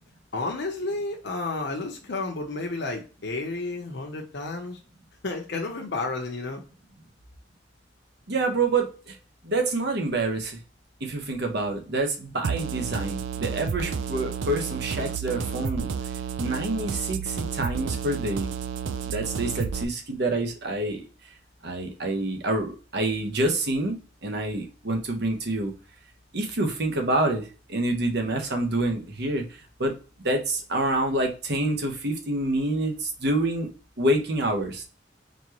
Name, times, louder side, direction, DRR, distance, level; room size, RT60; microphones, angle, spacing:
voice 1, 0.3-4.8 5.2-6.6, left 3 dB, 65° left, 1 dB, 0.8 m, -31 dB
voice 2, 8.3-9.1 9.4-10.6 11.0-15.9 16.4-18.5 19.1-21.0 21.6-23.9 24.2-25.7 26.3-29.4 29.8-29.9 30.2-33.7 34.0-34.8, right 2 dB, 60° right, 3 dB, 1.1 m, -27 dB
sound 1, 12.4-19.8, right 6 dB, 85° right, 0.4 m, -31 dB
4.2 x 3.3 x 3.0 m, 0.34 s
head